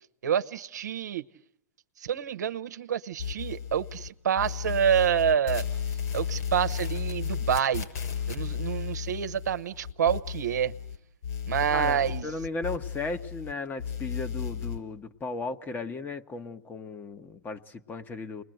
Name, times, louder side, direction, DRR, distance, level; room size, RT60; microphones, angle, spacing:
voice 1, 0.2-1.2 2.0-5.6 6.1-7.9 8.3-10.7 11.5-12.3, right 8 dB, 90° right, 1.0 m, -27 dB
sound 1, 3.2-4.1 4.4-11.0 11.2-13.5 13.8-14.8, left 7 dB, 65° left, 6.8 m, -34 dB
voice 2, 11.7-18.4, left 3 dB, 20° left, 1.3 m, -36 dB
30.0 x 21.0 x 7.9 m
hypercardioid pair, 120°, 9 cm